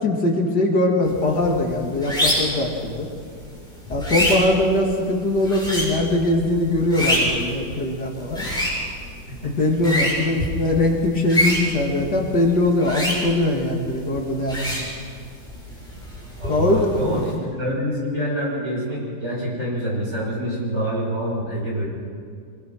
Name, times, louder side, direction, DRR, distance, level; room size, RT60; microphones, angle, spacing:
voice 1, 0.0-3.1 3.9-8.5 9.4-14.9 16.5-16.9, left 2 dB, 60° left, 0 dB, 2.9 m, -21 dB
sound 1, 1.0-17.4, equal, ahead, 7.3 m, -28 dB
voice 2, 16.4-21.9, equal, 35° right, -4 dB, 7.3 m, -26 dB
24.5 x 21.0 x 6.1 m, 2.2 s
omnidirectional pair, 2.0 m